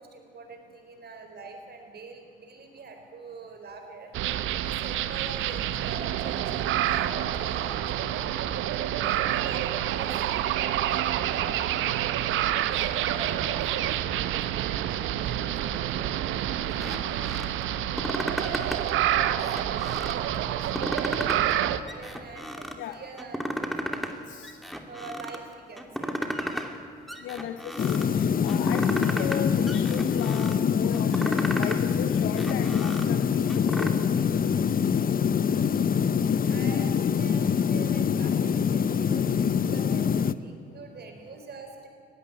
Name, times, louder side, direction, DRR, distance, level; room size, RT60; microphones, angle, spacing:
voice 1, 0.0-4.1 4.5-8.3 9.0-24.2 24.9-26.2 35.2-36.0 36.5-41.9, right 4 dB, 50° right, 5 dB, 4.4 m, -45 dB
sound 1, 4.1-21.8, right 12 dB, 70° right, 0.9 m, -28 dB
sound 2, 16.7-17.5 17.8-18.9 19.3-20.2 20.6-21.6 21.9-22.8 23.2-24.1 24.4-25.4 25.8-26.8 27.1-28.1 28.5-29.4 29.7-30.5 30.9-31.8 32.2-33.9, equal, ahead, 2.7 m, -34 dB
voice 2, 24.3-24.6 27.2-34.1, left 10 dB, 70° left, 8 dB, 1.0 m, -36 dB
sound 3, 27.8-40.3, left 7 dB, 45° left, 0.8 m, -25 dB
20.5 x 15.5 x 8.5 m, 2.6 s
hypercardioid pair, 45°, 21 cm